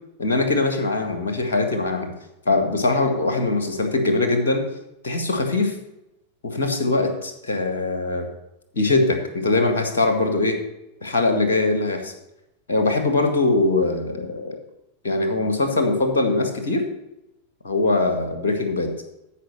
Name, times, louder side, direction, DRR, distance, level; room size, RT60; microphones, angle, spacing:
voice 1, 0.2-2.1 2.5-4.6 5.0-5.7 6.4-8.3 8.7-10.6 11.0-12.1 12.7-14.6 15.0-16.9 17.6-18.9, left 2 dB, 65° left, 5 dB, 1.8 m, -22 dB
14.0 x 5.3 x 5.5 m, 0.91 s
figure-of-eight pair, 90°, 0 cm